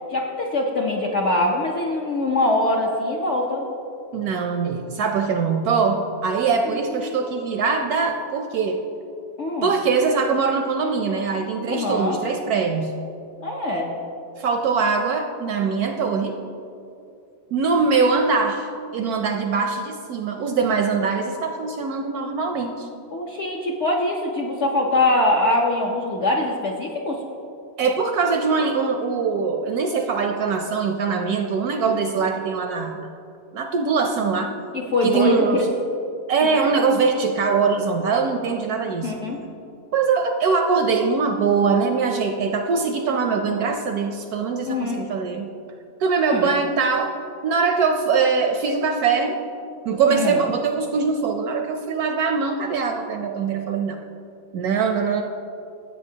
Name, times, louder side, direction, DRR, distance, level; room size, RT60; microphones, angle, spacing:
voice 1, 0.1-3.7 6.9-7.1 9.4-9.7 11.7-12.2 13.4-13.9 23.1-27.2 34.7-35.7 36.6-36.7 39.0-39.4 44.7-45.1 46.3-46.5 50.1-50.4, left 2 dB, 60° left, -1 dB, 0.7 m, -23 dB
voice 2, 4.1-8.8 9.6-13.0 14.4-16.4 17.5-18.7 18.9-22.9 27.8-33.1 33.5-34.5 35.0-35.7 36.3-39.1 39.9-45.5 46.0-47.1 47.4-49.4 49.9-54.0 54.5-55.2, right 5 dB, 70° right, 5 dB, 0.9 m, -22 dB
15.0 x 7.7 x 2.7 m, 2.7 s
omnidirectional pair, 1.9 m